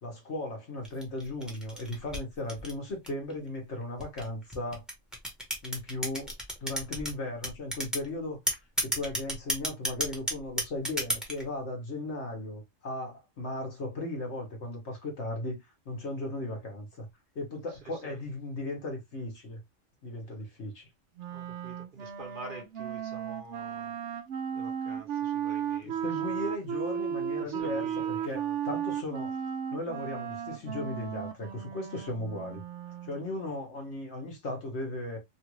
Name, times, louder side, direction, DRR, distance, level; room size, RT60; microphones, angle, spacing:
voice 1, 0.0-4.8 5.6-6.3 6.6-8.4 8.8-17.1 17.3-19.6 20.0-20.9 25.8-28.4 28.6-29.4 29.7-32.6 33.0-35.2, left 2 dB, 60° left, 1.4 m, -36 dB
sound 1, 0.8-3.3 4.0-7.1 7.4-8.1 8.5-11.4, right 1 dB, ahead, 1.0 m, -32 dB
Wind instrument woodwind instrument, 21.2-33.2, right 9 dB, 70° right, 0.9 m, -35 dB
voice 2, 21.3-23.9 24.5-26.0 27.4-28.6, right 2 dB, 45° right, 1.1 m, -47 dB
3.2 x 2.5 x 3.0 m
omnidirectional pair, 1.3 m